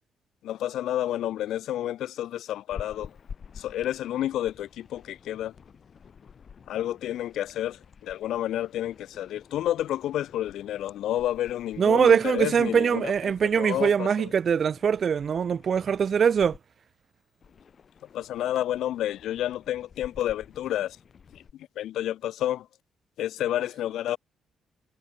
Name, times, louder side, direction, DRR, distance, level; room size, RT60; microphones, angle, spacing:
voice 1, 0.4-3.1 3.6-5.5 6.7-14.3 18.1-21.0 21.3-22.7 23.2-24.2, left 12 dB, 80° left, 2.2 m, -30 dB
sound 1, 2.7-16.6 17.4-21.5, left 6 dB, 45° left, 3.8 m, -50 dB
voice 2, 11.8-16.6, right 7 dB, 50° right, 0.4 m, -22 dB
cardioid pair, 90°, 0 cm